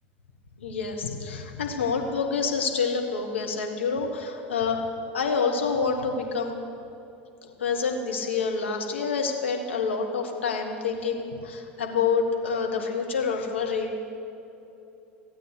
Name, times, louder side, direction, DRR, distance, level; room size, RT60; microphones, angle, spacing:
voice 1, 0.6-4.8 5.1-6.5 7.6-14.0, left 5 dB, 80° left, 2 dB, 1.5 m, -27 dB
15.5 x 8.8 x 6.5 m, 2.9 s
hypercardioid pair, 75°, 6 cm